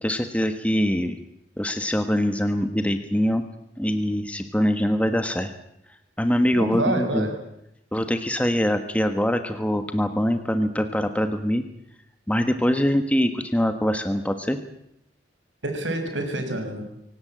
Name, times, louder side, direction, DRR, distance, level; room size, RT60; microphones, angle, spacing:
voice 1, 0.0-1.1 1.6-3.4 3.8-5.5 6.2-7.2 7.9-11.6 12.3-14.6, equal, 10° left, 8 dB, 1.4 m, -23 dB
voice 2, 6.5-7.4 15.6-16.9, right 1 dB, 90° right, 5 dB, 6.0 m, -27 dB
25.0 x 17.5 x 8.9 m, 0.79 s
head